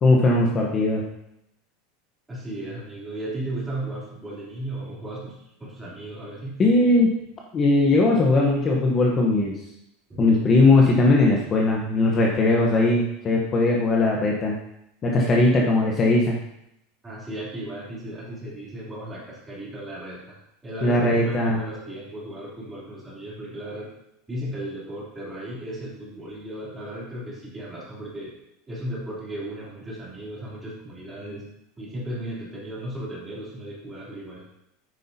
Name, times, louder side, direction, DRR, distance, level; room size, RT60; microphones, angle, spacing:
voice 1, 0.0-1.1 6.6-7.2 7.5-9.5 10.2-14.6 15.0-16.4 20.8-21.6, left 2 dB, 25° left, -1 dB, 1.0 m, -19 dB
voice 2, 2.3-6.6 10.1-10.3 17.0-20.4 20.6-23.9 24.3-28.3 28.7-31.5 31.8-34.4, right 1 dB, 10° right, -6 dB, 3.1 m, -35 dB
sound 1, 20.8-23.4, right 4 dB, 85° right, 1.3 m, -41 dB
10.0 x 9.2 x 2.8 m, 0.80 s
supercardioid pair, 160°, 0 cm